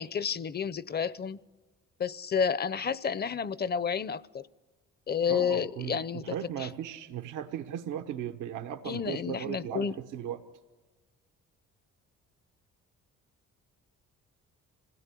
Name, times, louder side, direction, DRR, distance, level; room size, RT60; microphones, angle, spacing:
voice 1, 0.0-1.4 2.0-4.5 5.1-6.7 8.9-10.0, left 7 dB, 35° left, 18 dB, 0.6 m, -31 dB
voice 2, 5.3-6.0 6.2-9.9 10.1-10.4, right 10 dB, 90° right, 6 dB, 1.1 m, -36 dB
26.0 x 17.0 x 8.4 m, 1.2 s
cardioid pair, 90°, 30 cm